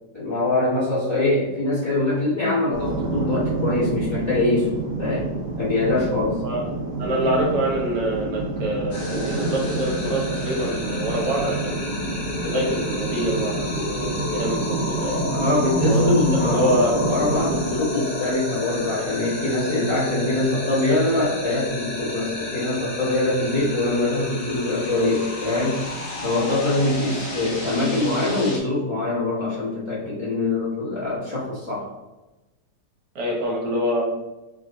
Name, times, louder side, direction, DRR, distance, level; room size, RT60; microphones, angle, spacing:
voice 1, 0.1-4.7 5.0-6.4 15.3-25.9 26.2-31.8, left 2 dB, 15° left, -9 dB, 1.4 m, -23 dB
sound 1, 2.7-17.7, right 2 dB, 50° right, 1.7 m, -28 dB
voice 2, 7.0-11.9 12.5-15.3 15.9-16.9 33.2-34.0, right 1 dB, 70° right, -3 dB, 1.6 m, -25 dB
sound 2, 8.9-28.6, left 2 dB, 70° left, 1.6 m, -32 dB
3.7 x 3.5 x 3.9 m, 1.0 s
omnidirectional pair, 1.9 m